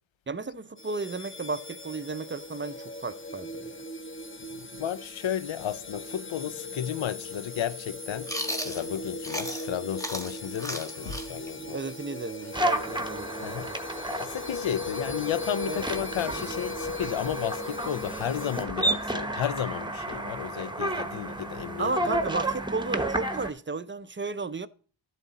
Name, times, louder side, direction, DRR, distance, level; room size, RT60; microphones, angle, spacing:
voice 1, 0.3-3.8 11.0-11.2 11.5-13.8 15.7-15.9 21.8-24.7, right 3 dB, 25° right, 0.5 m, -34 dB
sound 1, 0.8-18.6, left 2 dB, 25° left, 1.1 m, -39 dB
voice 2, 4.4-11.9 13.4-13.7 14.2-21.9, left 10 dB, 75° left, 0.6 m, -33 dB
Chewing mastication, 8.3-9.7 10.0-13.6, equal, 5° left, 1.4 m, -35 dB
sound 2, 12.5-23.5, right 1 dB, 10° right, 1.0 m, -32 dB
12.5 x 7.4 x 4.0 m
wide cardioid pair, 60°, 47 cm